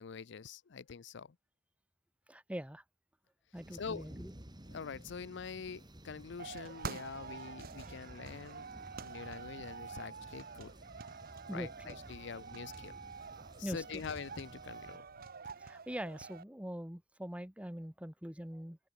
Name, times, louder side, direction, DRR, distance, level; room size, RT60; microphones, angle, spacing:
voice 1, 0.0-1.3 3.7-4.1 4.7-8.7 9.0-10.7 11.5-12.9 13.6-15.1, left 6 dB, 65° left, 0.5 m, -45 dB
voice 2, 2.3-2.8 3.5-4.3 11.5-12.0 13.6-14.0 15.6-18.8, equal, 5° right, 1.6 m, -43 dB
sound 1, 3.6-15.0, right 1 dB, 25° right, 3.2 m, -54 dB
sound 2, 6.4-16.4, right 5 dB, 50° right, 1.0 m, -47 dB
head